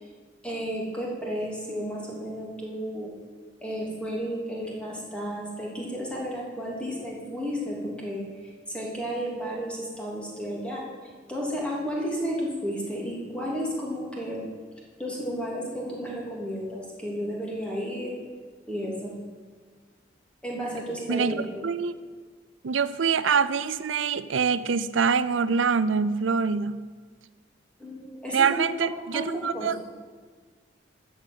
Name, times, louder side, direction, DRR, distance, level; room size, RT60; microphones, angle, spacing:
voice 1, 0.4-3.1 3.6-8.2 8.7-10.8 11.3-14.4 15.0-18.1 18.7-19.2 20.4-21.6 27.8-28.6 28.9-29.7, equal, 5° left, -4 dB, 3.0 m, -32 dB
voice 2, 21.1-22.0 22.6-26.8 28.3-29.8, right 6 dB, 80° right, 15 dB, 0.5 m, -25 dB
13.5 x 6.2 x 8.8 m, 1.5 s
head